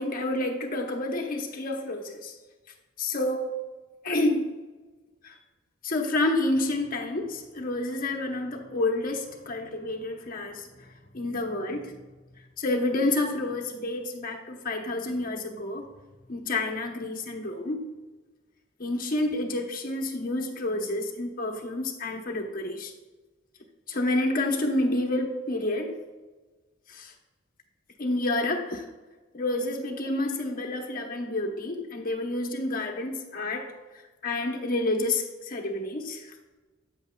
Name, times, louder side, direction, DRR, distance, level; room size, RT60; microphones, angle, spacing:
voice 1, 0.0-2.3 3.0-3.5 4.0-4.5 5.2-5.4 5.8-10.9 11.1-11.9 12.6-15.9 16.3-17.8 18.8-22.9 23.9-26.0 26.9-27.1 28.0-28.8 29.3-33.7 34.2-36.3, left 2 dB, 45° left, 2 dB, 0.9 m, -29 dB
8.4 x 7.9 x 2.3 m, 1.3 s
head